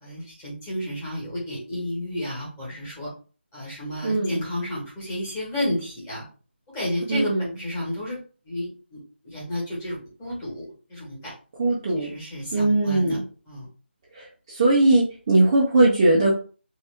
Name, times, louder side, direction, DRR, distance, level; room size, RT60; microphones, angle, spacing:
voice 1, 0.0-3.1 3.5-6.2 6.7-8.2 8.4-11.3 12.0-13.2 13.4-13.7, left 1 dB, 10° left, -8 dB, 1.4 m, -32 dB
voice 2, 7.1-7.4 11.6-12.1 12.5-13.2 14.5-16.4, right 2 dB, 15° right, -5 dB, 0.5 m, -19 dB
3.5 x 2.9 x 3.4 m, 0.37 s
figure-of-eight pair, 170°, 6 cm